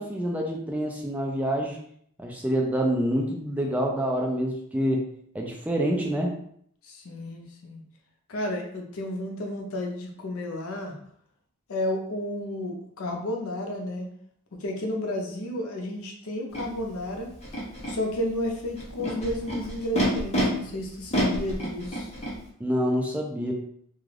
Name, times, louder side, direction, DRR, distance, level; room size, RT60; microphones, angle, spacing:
voice 1, 0.0-1.8 2.2-5.0 5.3-6.4 22.6-23.5, equal, 5° right, 0 dB, 0.3 m, -27 dB
voice 2, 6.8-7.8 8.3-11.0 11.7-14.1 14.6-17.3 17.9-22.1, left 1 dB, 70° left, 1 dB, 0.6 m, -32 dB
Animal, 16.5-16.6 17.4-17.9 18.8-20.4 21.1-22.3, right 1 dB, 30° left, 0.7 m, -28 dB
2.4 x 2.3 x 3.2 m, 0.66 s
head